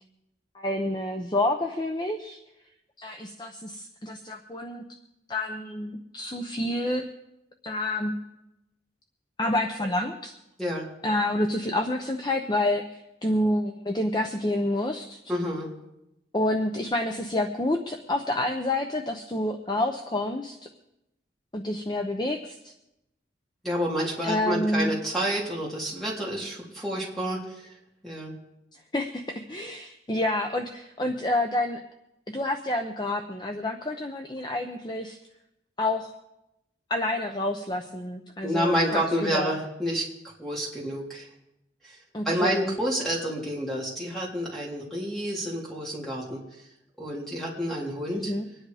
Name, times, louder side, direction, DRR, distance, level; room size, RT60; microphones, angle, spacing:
voice 1, 0.5-2.4 3.0-4.8 5.3-7.1 7.6-8.2 9.4-10.3 11.0-15.2 16.3-20.6 21.5-22.7 24.2-24.9 28.9-31.8 32.3-35.2 35.8-36.1 36.9-39.6 42.1-42.7 48.1-48.5, left 1 dB, 25° left, 5 dB, 0.7 m, -28 dB
voice 2, 15.3-15.7 23.6-27.4 28.0-28.3 38.4-40.1 40.4-41.3 42.3-46.4 47.0-48.3, equal, ahead, -4 dB, 3.4 m, -29 dB
24.5 x 10.0 x 4.9 m, 0.90 s
head